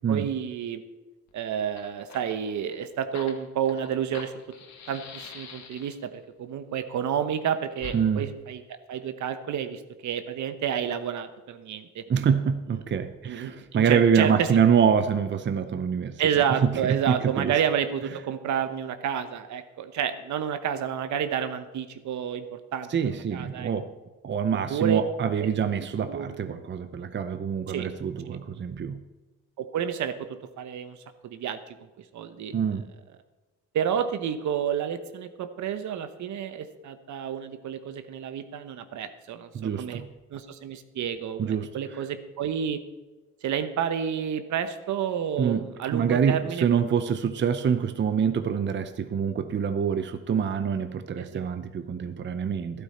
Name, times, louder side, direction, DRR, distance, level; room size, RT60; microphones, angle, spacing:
voice 1, 0.1-0.8 1.3-4.3 4.9-8.6 8.9-12.0 13.2-14.5 16.2-23.7 24.7-25.0 25.4-25.5 26.1-26.2 27.7-27.9 28.3-28.4 29.6-30.1 30.6-31.0 31.2-31.7 32.1-32.6 33.7-40.0 40.3-42.8 43.4-46.7 51.2-51.5, right 8 dB, 70° right, 10 dB, 1.0 m, -30 dB
Fire, 1.3-1.4 1.6-6.1 7.8-8.0, left 5 dB, 65° left, 1.7 m, -45 dB
voice 2, 7.9-8.3 12.1-17.5 22.9-23.9 24.2-29.0 32.5-32.9 39.5-40.1 41.4-42.0 45.4-52.8, right 7 dB, 40° right, 10 dB, 0.7 m, -26 dB
12.5 x 12.0 x 4.3 m, 1.2 s
cardioid pair, 90°, 30 cm